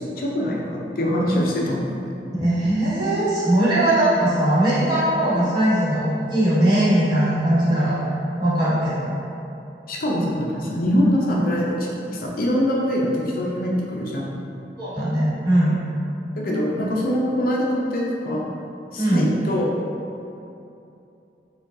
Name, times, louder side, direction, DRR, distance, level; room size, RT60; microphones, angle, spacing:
voice 1, 0.0-2.1 9.9-14.3 16.4-18.5 18.9-19.7, equal, 55° left, -3 dB, 0.5 m, -23 dB
voice 2, 2.4-8.0 8.4-9.1 14.8-15.8 19.0-19.2, right 1 dB, 25° right, -10 dB, 1.3 m, -20 dB
4.9 x 2.3 x 3.7 m, 2.7 s
head